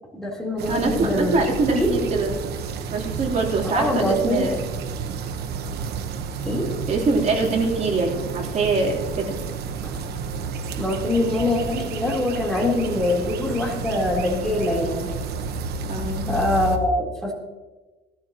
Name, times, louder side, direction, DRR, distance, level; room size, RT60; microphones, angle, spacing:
voice 1, 0.1-1.4 1.7-1.9 3.7-4.5 6.4-6.7 10.8-15.1 16.3-17.3, left 1 dB, 5° left, -2 dB, 3.7 m, -23 dB
sound 1, 0.6-16.8, right 4 dB, 70° right, 1.2 m, -31 dB
voice 2, 0.7-2.4 2.9-4.6 6.9-9.4 15.9-16.3, right 3 dB, 45° right, -2 dB, 3.6 m, -23 dB
19.0 x 13.0 x 3.0 m, 1.2 s
cardioid pair, 110°, 17 cm